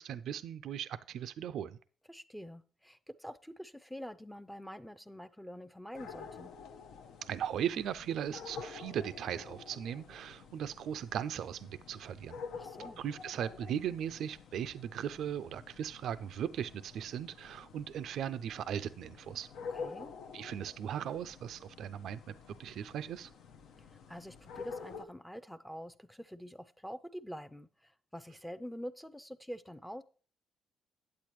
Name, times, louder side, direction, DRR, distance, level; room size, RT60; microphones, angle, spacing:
voice 1, 0.0-1.8 7.3-12.4 13.0-19.5 20.3-22.3 22.6-23.3, right 9 dB, 75° right, 0.3 m, -38 dB
voice 2, 2.1-6.5 12.5-13.0 19.7-20.1 23.8-30.0, equal, 5° left, 0.5 m, -46 dB
sound 1, 5.9-25.0, left 5 dB, 80° left, 0.7 m, -49 dB
8.5 x 8.2 x 3.0 m
cardioid pair, 90°, 0 cm